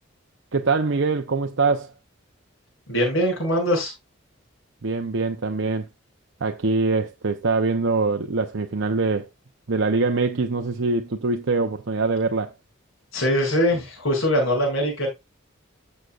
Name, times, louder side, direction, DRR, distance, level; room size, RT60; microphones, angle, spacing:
voice 1, 0.5-1.9 4.8-5.9 6.4-9.3 9.7-12.5, right 3 dB, 65° right, 0.7 m, -23 dB
voice 2, 2.9-3.9 13.1-15.1, equal, 70° left, 7.0 m, -22 dB
14.5 x 6.6 x 2.4 m
head